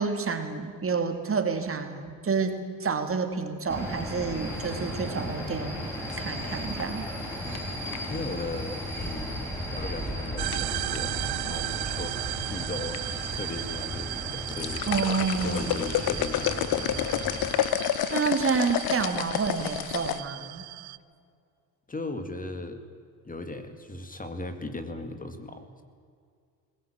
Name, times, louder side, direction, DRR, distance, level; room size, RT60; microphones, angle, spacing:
voice 1, 0.0-7.1 14.9-15.7 18.1-20.7, right 5 dB, 35° right, 6 dB, 2.7 m, -29 dB
sound 1, 3.7-17.5, equal, 5° left, 7.8 m, -35 dB
sound 2, 6.1-8.2 9.8-10.1 10.5-11.0 11.9-12.4 12.7-13.0 13.4-13.5 14.2-20.2, left 11 dB, 65° left, 1.2 m, -30 dB
voice 2, 8.1-12.2 12.5-13.0 13.3-14.9 15.4-17.2 21.9-22.8 23.3-25.8, left 2 dB, 20° left, 8 dB, 2.1 m, -37 dB
sound 3, 10.4-21.0, right 18 dB, 70° right, 0.7 m, -36 dB
20.5 x 18.0 x 9.0 m, 2.2 s
supercardioid pair, 85°, 39 cm